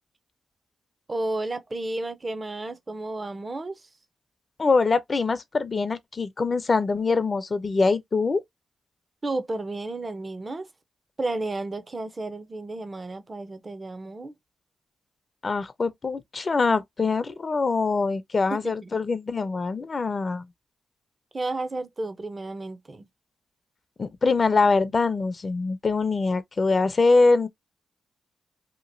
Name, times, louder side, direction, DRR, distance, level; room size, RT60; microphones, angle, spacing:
voice 1, 1.1-3.9 9.2-10.7 11.2-14.3 18.5-18.9 21.3-23.1, right 2 dB, 35° right, 0.7 m, -32 dB
voice 2, 4.6-8.4 15.4-20.4 24.0-27.5, left 4 dB, 45° left, 0.5 m, -23 dB
2.9 x 2.5 x 2.6 m
supercardioid pair, 45°, 0 cm